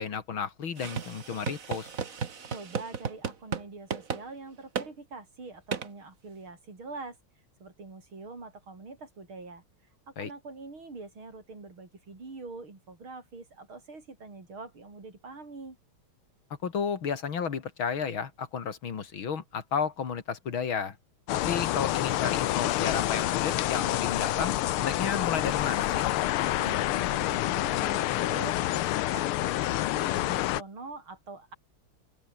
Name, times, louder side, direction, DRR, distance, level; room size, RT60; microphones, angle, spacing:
voice 1, 0.0-1.9 10.2-10.3 16.6-21.0 21.3-26.1, left 6 dB, 70° left, 2.9 m, -32 dB
sound 1, 0.8-3.6 3.9-4.2 4.7-4.9 5.7-5.9, right 6 dB, 40° right, 1.9 m, -34 dB
voice 2, 2.5-7.2 7.6-9.6 10.1-15.8 26.6-31.5, right 3 dB, 75° right, 6.0 m, -44 dB
sound 2, 21.3-30.6, left 15 dB, 85° left, 1.7 m, -28 dB
open air
omnidirectional pair, 2.3 m